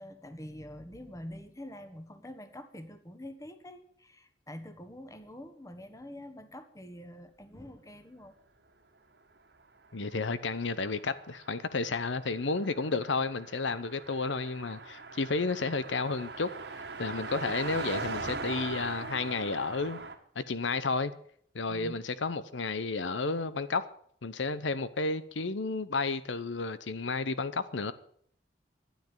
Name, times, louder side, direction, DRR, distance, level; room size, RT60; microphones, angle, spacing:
voice 1, 0.0-8.3 21.7-22.0, left 1 dB, 15° left, 1.3 m, -46 dB
voice 2, 9.9-16.5 16.8-20.0 20.3-21.1 21.5-23.9 24.2-27.9, left 3 dB, 80° left, 0.9 m, -32 dB
Car passing by, 10.0-20.2, right 3 dB, 60° right, 1.8 m, -41 dB
12.5 x 9.8 x 9.0 m
head